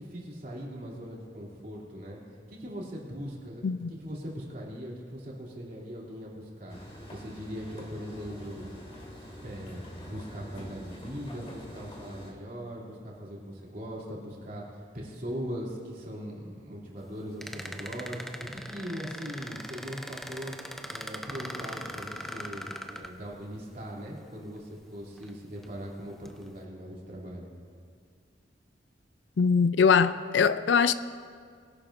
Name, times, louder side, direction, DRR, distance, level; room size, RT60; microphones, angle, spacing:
voice 1, 0.0-2.2 2.5-8.7 9.4-20.6 20.9-27.5, equal, 50° right, 2.8 m, -40 dB
sound 1, 6.7-12.3, equal, 30° left, 2.1 m, -45 dB
sound 2, 17.4-23.6 24.6-24.7 25.2-25.7 26.2-26.5, equal, ahead, 0.5 m, -40 dB
voice 2, 29.4-30.9, left 6 dB, 75° left, 0.4 m, -22 dB
21.5 x 11.0 x 2.6 m
head